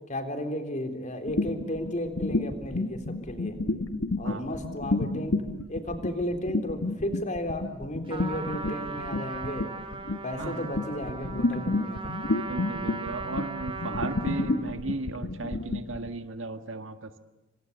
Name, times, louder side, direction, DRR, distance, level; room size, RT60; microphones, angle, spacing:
voice 1, 0.1-3.6 4.2-5.4 5.7-9.7 10.2-12.0 12.3-12.4, left 1 dB, 40° left, 6 dB, 3.9 m, -34 dB
sound 1, 1.3-16.1, left 2 dB, 70° left, 1.6 m, -30 dB
Trumpet, 8.1-14.7, right 4 dB, 25° right, 2.7 m, -38 dB
voice 2, 12.4-17.1, right 2 dB, 70° right, 8 dB, 1.7 m, -35 dB
27.5 x 25.5 x 8.2 m, 1.0 s
head